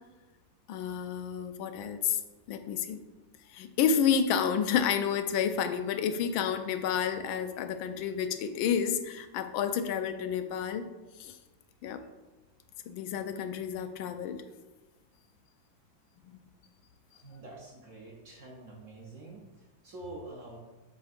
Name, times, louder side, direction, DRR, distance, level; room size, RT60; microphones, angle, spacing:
voice 1, 0.7-2.2 2.5-3.0 3.5-10.8 11.2-11.4 11.8-12.0 12.9-14.4 16.3-16.4, left 7 dB, 90° left, 9 dB, 1.4 m, -30 dB
voice 2, 17.1-20.6, right 2 dB, 55° right, -1 dB, 0.9 m, -47 dB
7.5 x 5.5 x 2.5 m, 1.2 s
omnidirectional pair, 2.1 m